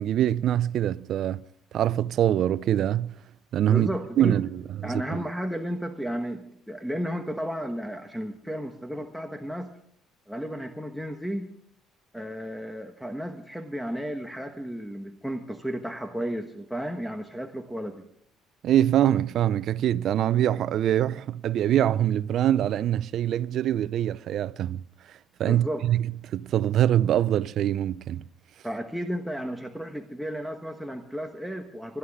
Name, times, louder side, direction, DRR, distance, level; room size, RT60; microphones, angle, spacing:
voice 1, 0.0-1.4 1.7-3.1 3.5-3.9 4.2-5.2 18.6-24.8 25.4-28.2, right 11 dB, 60° right, 0.5 m, -24 dB
voice 2, 3.7-4.4 4.8-9.7 10.3-11.5 12.1-18.0 25.4-25.8 28.6-32.0, equal, ahead, 1.2 m, -33 dB
26.0 x 11.0 x 3.6 m
cardioid pair, 110°, 0 cm